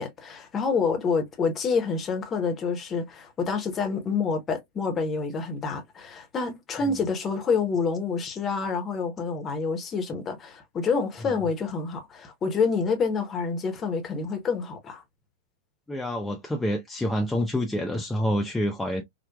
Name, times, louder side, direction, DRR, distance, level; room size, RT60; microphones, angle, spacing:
voice 1, 0.0-15.0, left 5 dB, 25° left, 1.0 m, -27 dB
voice 2, 15.9-19.0, equal, 10° left, 0.5 m, -27 dB
4.3 x 2.2 x 2.3 m
figure-of-eight pair, 90°, 0 cm